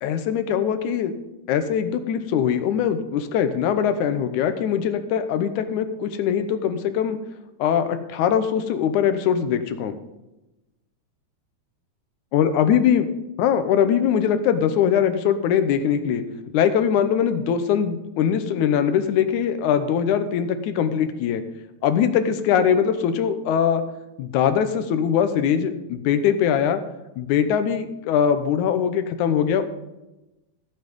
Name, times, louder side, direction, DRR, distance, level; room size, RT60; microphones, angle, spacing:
voice 1, 0.0-1.1 1.5-7.2 7.6-10.0 12.3-13.1 13.4-16.2 16.5-21.4 21.8-23.8 24.2-26.8 27.2-29.6, left 8 dB, 90° left, 9 dB, 2.3 m, -21 dB
14.0 x 8.0 x 5.3 m, 1.0 s
omnidirectional pair, 3.4 m